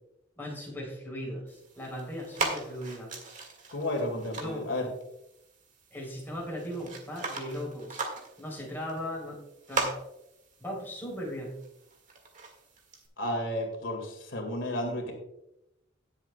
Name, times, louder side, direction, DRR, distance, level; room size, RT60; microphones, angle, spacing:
voice 1, 0.4-3.1 4.4-4.7 5.9-8.0 8.4-9.4 9.7-9.9 10.6-11.5, equal, 10° left, -3 dB, 3.3 m, -38 dB
sound 1, 1.5-13.1, right 3 dB, 40° right, 1.8 m, -39 dB
voice 2, 3.7-4.9 13.2-15.1, left 1 dB, 80° left, 3 dB, 2.1 m, -32 dB
17.5 x 7.3 x 2.2 m, 0.85 s
head